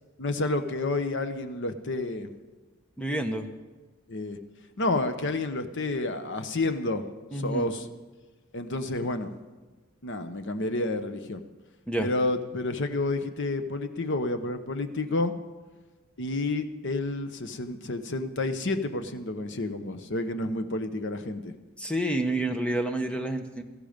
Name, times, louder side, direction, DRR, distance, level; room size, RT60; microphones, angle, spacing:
voice 1, 0.2-2.3 4.1-4.4 4.8-7.1 7.3-7.9 8.5-9.3 10.0-11.4 12.0-15.3 16.2-21.5, left 2 dB, 55° left, 8 dB, 1.0 m, -30 dB
voice 2, 3.0-3.5 7.3-7.7 11.9-12.1 21.8-23.6, right 1 dB, 5° left, 6 dB, 1.0 m, -29 dB
17.5 x 14.5 x 5.2 m, 1.3 s
head